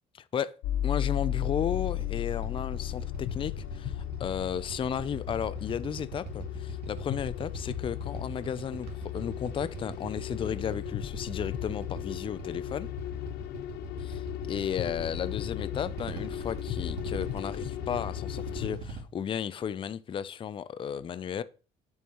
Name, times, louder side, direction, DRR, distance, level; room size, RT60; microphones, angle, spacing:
sound 1, 0.6-18.7, left 13 dB, 80° left, 0.5 m, -35 dB
voice 1, 0.8-12.9 14.2-21.4, left 8 dB, 30° left, 0.4 m, -34 dB
Motorcycle / Idling, 1.1-19.0, right 7 dB, 80° right, 1.8 m, -43 dB
9.2 x 7.1 x 3.0 m
cardioid pair, 110°, 17 cm